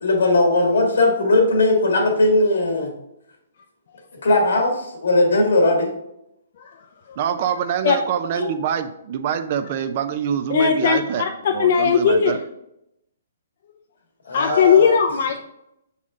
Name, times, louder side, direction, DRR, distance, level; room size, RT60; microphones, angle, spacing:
voice 1, 0.0-2.9 4.2-5.9 8.4-8.5 14.3-15.0, left 2 dB, 85° left, 2 dB, 1.7 m, -18 dB
voice 2, 7.2-12.4, right 8 dB, 45° right, 10 dB, 0.5 m, -25 dB
voice 3, 10.5-12.4 14.3-15.4, left 6 dB, 55° left, 3 dB, 0.5 m, -18 dB
6.1 x 4.1 x 3.7 m, 0.82 s
hypercardioid pair, 150°, 0 cm